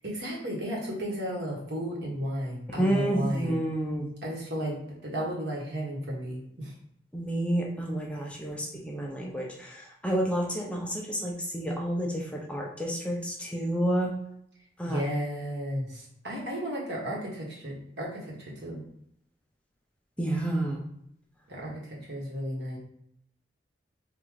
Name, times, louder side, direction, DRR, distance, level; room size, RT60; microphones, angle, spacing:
voice 1, 0.0-3.6 4.2-6.7 14.8-18.8 21.5-22.8, equal, 65° right, -3 dB, 1.4 m, -34 dB
voice 2, 2.8-4.1 7.1-14.1 14.8-15.0 20.2-20.8, right 1 dB, 5° left, -2 dB, 0.5 m, -30 dB
3.7 x 2.5 x 4.6 m, 0.73 s
head